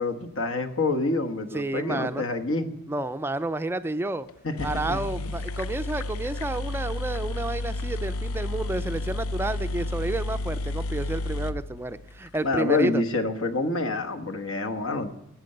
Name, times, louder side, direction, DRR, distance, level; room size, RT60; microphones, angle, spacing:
voice 1, 0.0-2.7 4.4-5.3 12.4-15.1, left 3 dB, 70° left, 5 dB, 1.2 m, -27 dB
voice 2, 1.5-2.2 2.9-4.3 4.6-13.0, right 2 dB, 10° right, 11 dB, 0.4 m, -30 dB
sound 1, 4.3-4.4 4.6-12.4, left 2 dB, 90° left, 0.5 m, -31 dB
14.0 x 8.5 x 6.6 m, 0.82 s
head